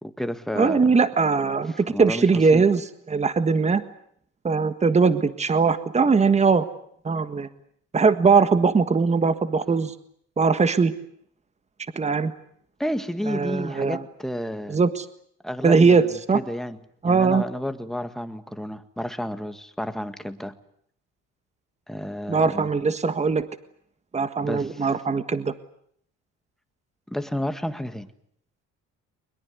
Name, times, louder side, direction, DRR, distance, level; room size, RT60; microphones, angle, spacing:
voice 1, 0.0-1.0 1.7-2.6 12.8-14.8 15.4-16.1 16.3-16.8 17.1-20.6 21.9-22.7 24.4-24.9 27.1-28.1, equal, ahead, 9 dB, 1.8 m, -31 dB
voice 2, 0.5-3.8 4.4-6.6 7.0-7.5 7.9-9.9 10.4-10.9 11.9-12.3 13.3-14.0 14.7-15.0 15.6-16.4 17.0-17.4 22.3-23.4 24.1-25.5, right 4 dB, 20° right, 12 dB, 1.6 m, -20 dB
22.5 x 21.5 x 9.6 m, 0.66 s
cardioid pair, 110°, 30 cm